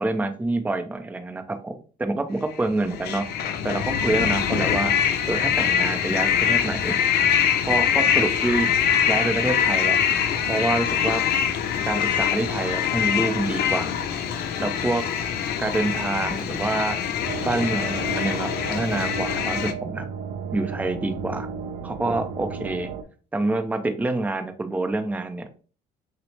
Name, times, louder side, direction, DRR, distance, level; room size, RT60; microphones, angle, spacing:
voice 1, 0.0-3.3 3.6-5.0 5.3-7.0 7.7-8.7 9.1-10.0 10.5-11.2 11.9-13.9 14.6-15.0 15.6-17.0 17.4-20.1 20.5-21.5 21.8-22.9 23.3-25.5, right 2 dB, 10° right, 7 dB, 0.5 m, -27 dB
sound 1, 2.6-19.7, left 8 dB, 70° left, 0.6 m, -24 dB
sound 2, 17.3-23.0, right 5 dB, 85° right, 0.6 m, -34 dB
6.0 x 2.0 x 3.2 m, 0.38 s
cardioid pair, 110°, 17 cm